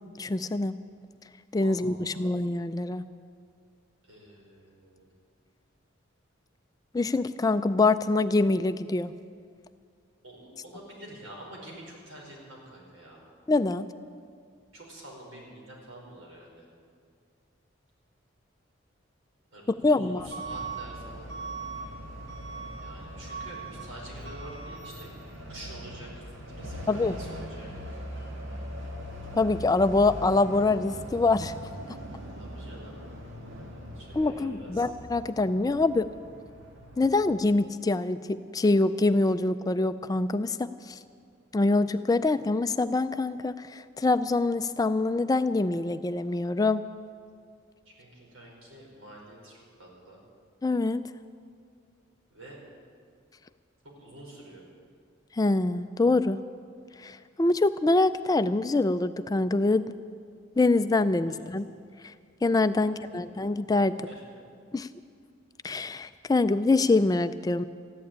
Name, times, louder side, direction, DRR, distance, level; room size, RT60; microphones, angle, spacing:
voice 1, 0.2-0.7 1.5-3.0 6.9-9.1 13.5-13.9 19.8-20.3 26.9-27.1 29.3-31.5 34.1-36.1 37.0-41.0 41.5-46.8 50.6-51.0 55.4-56.4 57.0-59.9 60.6-61.7 62.4-63.9 64.7-64.9 65.6-67.6, left 2 dB, 20° left, 12 dB, 0.3 m, -25 dB
voice 2, 1.6-2.3 4.0-5.1 10.2-13.3 14.7-16.7 19.5-21.3 22.8-28.0 32.4-33.0 33.3-34.8 47.8-50.2 52.3-52.6 53.8-54.6 61.3-61.6 62.8-63.5 64.1-64.2, right 1 dB, 90° right, -2 dB, 5.0 m, -48 dB
Truck / Alarm, 20.2-37.4, right 1 dB, 65° right, 2.2 m, -40 dB
14.5 x 11.0 x 8.8 m, 2.2 s
head